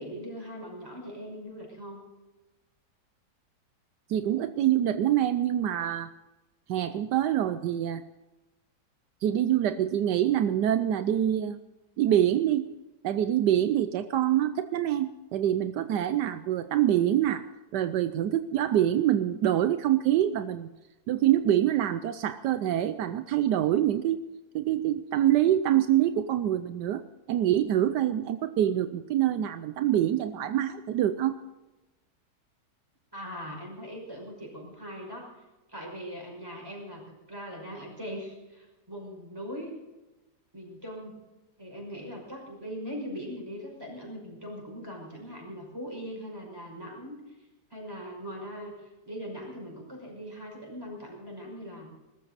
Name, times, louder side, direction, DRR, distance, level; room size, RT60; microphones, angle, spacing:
voice 1, 0.0-2.0 33.1-35.3 35.7-37.0 37.3-39.7 40.5-41.2 41.6-47.2 47.7-51.9, equal, 15° right, -1 dB, 5.9 m, -40 dB
voice 2, 4.1-6.1 6.7-8.0 9.2-11.6 12.0-12.7 13.0-17.4 17.7-20.7 21.1-24.3 24.5-27.0 27.3-31.4, right 11 dB, 80° right, 11 dB, 1.3 m, -25 dB
21.0 x 13.5 x 4.1 m, 1.1 s
omnidirectional pair, 1.8 m